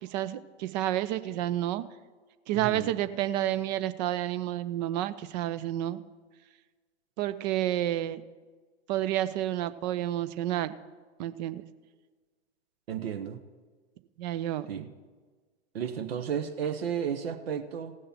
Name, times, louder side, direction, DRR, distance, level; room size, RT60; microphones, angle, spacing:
voice 1, 0.0-1.8 2.5-6.0 7.2-8.2 8.9-10.7 11.2-11.6 14.2-14.7, right 13 dB, 40° right, 13 dB, 0.6 m, -30 dB
voice 2, 2.5-2.9 12.9-13.4 14.7-14.9 15.7-18.0, right 8 dB, 65° right, 8 dB, 0.9 m, -33 dB
16.5 x 6.5 x 5.9 m, 1.4 s
figure-of-eight pair, 95°, 33 cm